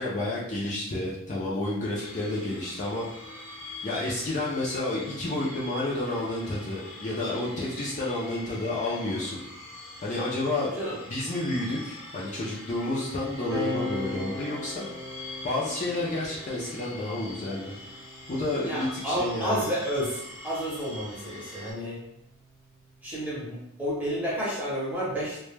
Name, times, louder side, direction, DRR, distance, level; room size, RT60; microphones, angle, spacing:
voice 1, 0.0-3.1 3.8-9.4 10.0-10.7 11.1-14.9 15.4-17.7 18.3-19.6, left 2 dB, 35° left, -6 dB, 0.4 m, -30 dB
sound 1, 1.9-21.7, left 1 dB, 90° left, 0.9 m, -44 dB
voice 2, 10.6-11.0 18.6-22.0 23.0-25.4, equal, 10° right, -7 dB, 0.7 m, -31 dB
sound 2, 13.5-20.4 21.4-23.2, left 2 dB, 50° right, 0.7 m, -40 dB
2.1 x 2.1 x 3.1 m, 0.83 s
head